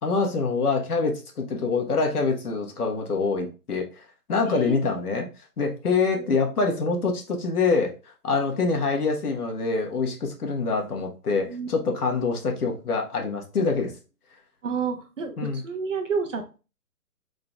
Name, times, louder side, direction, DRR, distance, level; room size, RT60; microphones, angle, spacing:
voice 1, 0.0-5.3 5.6-7.9 8.2-13.9 15.4-15.6, left 4 dB, 70° left, 2 dB, 1.5 m, -25 dB
voice 2, 14.6-16.6, right 5 dB, 50° right, 5 dB, 1.0 m, -30 dB
5.1 x 3.9 x 2.4 m, 0.33 s
hypercardioid pair, 160°, 48 cm